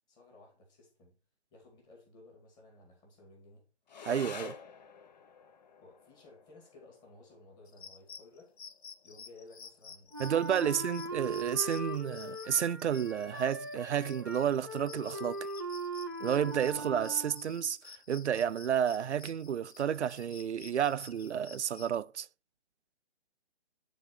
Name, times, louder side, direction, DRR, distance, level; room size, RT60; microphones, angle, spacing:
voice 1, 0.1-1.2 1.5-3.6 5.8-8.5 9.0-10.1 10.6-10.8, left 2 dB, 10° left, 1.9 m, -56 dB
sound 1, 3.9-12.9, left 6 dB, 40° left, 0.9 m, -52 dB
voice 2, 4.1-4.6 10.2-15.5 16.2-22.3, right 9 dB, 90° right, 0.5 m, -31 dB
sound 2, 7.7-22.0, left 6 dB, 70° left, 1.0 m, -53 dB
Wind instrument woodwind instrument, 10.1-17.7, right 2 dB, 20° right, 0.3 m, -40 dB
9.1 x 3.9 x 4.1 m
hypercardioid pair, 155°, 33 cm